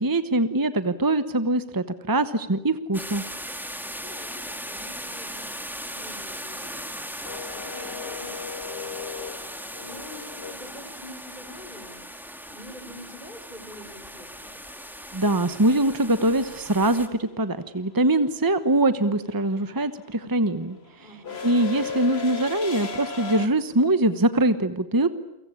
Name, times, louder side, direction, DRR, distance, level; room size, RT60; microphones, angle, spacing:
voice 1, 0.0-3.2 15.1-20.8 21.4-25.1, right 1 dB, 20° right, 11 dB, 1.1 m, -23 dB
sound 1, 2.9-17.1, equal, ahead, 2.3 m, -38 dB
voice 2, 4.0-6.9 7.2-9.0 9.8-12.1 12.5-14.5 21.0-21.5, left 1 dB, 45° left, 7 dB, 4.6 m, -46 dB
sound 2, 7.2-11.3 13.7-13.8 15.1-15.4 15.7-23.5, left 5 dB, 70° left, 2.0 m, -36 dB
29.5 x 24.0 x 8.5 m, 0.85 s
omnidirectional pair, 1.1 m